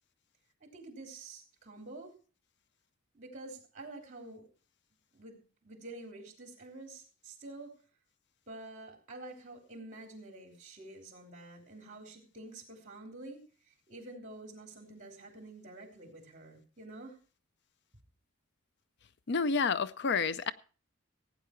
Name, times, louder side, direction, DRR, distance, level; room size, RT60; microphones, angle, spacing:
voice 1, 0.6-2.1 3.1-4.5 5.1-5.4 5.6-7.7 8.5-13.4 13.7-17.2, right 2 dB, 40° right, 3.5 m, -48 dB
voice 2, 19.3-20.5, left 5 dB, 60° left, 0.5 m, -29 dB
16.5 x 9.3 x 4.5 m
head